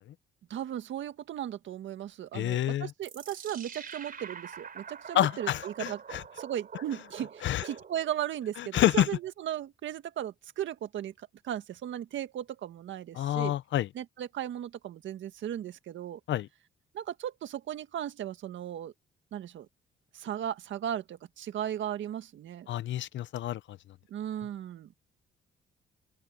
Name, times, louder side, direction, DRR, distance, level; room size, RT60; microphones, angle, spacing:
voice 1, 0.5-6.0 6.4-11.1 11.4-13.5 14.0-16.2 16.9-18.9 19.3-19.7 20.1-22.7 24.1-24.9, right 11 dB, 70° right, 1.7 m, -36 dB
voice 2, 2.3-2.9 5.1-6.2 7.4-7.6 8.6-9.1 13.1-13.9 16.3-16.5 22.7-23.8, left 12 dB, 70° left, 0.8 m, -28 dB
sound 1, 3.0-8.3, right 6 dB, 45° right, 3.8 m, -45 dB
open air
cardioid pair, 90°, 20 cm